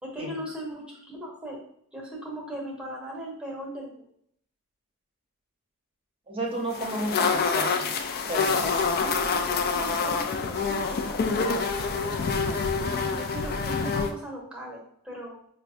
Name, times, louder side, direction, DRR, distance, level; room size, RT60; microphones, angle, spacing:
voice 1, 0.0-1.6 1.9-4.1 7.2-7.5 9.0-12.4 13.1-15.4, equal, 5° right, -3 dB, 1.0 m, -38 dB
voice 2, 6.3-7.9 8.3-8.8, right 1 dB, 25° right, 0 dB, 0.7 m, -32 dB
sound 1, 6.7-14.1, left 5 dB, 45° left, 0.3 m, -26 dB
5.8 x 2.1 x 2.5 m, 0.68 s
head